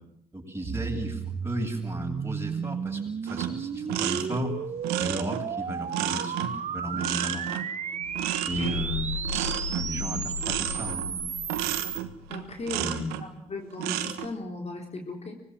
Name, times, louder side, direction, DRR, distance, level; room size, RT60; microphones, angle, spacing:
voice 1, 0.3-4.6 5.0-7.5 8.5-9.1 9.7-11.7 12.8-13.2, equal, 15° right, 0 dB, 8.0 m, -34 dB
sound 1, 0.6-12.0, right 7 dB, 45° right, 1.4 m, -34 dB
sound 2, 3.3-13.3 13.7-14.3, right 13 dB, 75° right, 1.4 m, -32 dB
sound 3, 8.5-12.6, left 6 dB, 90° left, 5.4 m, -36 dB
voice 2, 12.3-12.9 13.2-15.4, left 2 dB, 40° left, 2 dB, 4.1 m, -37 dB
25.0 x 20.5 x 7.7 m, 0.75 s
hypercardioid pair, 45°, 16 cm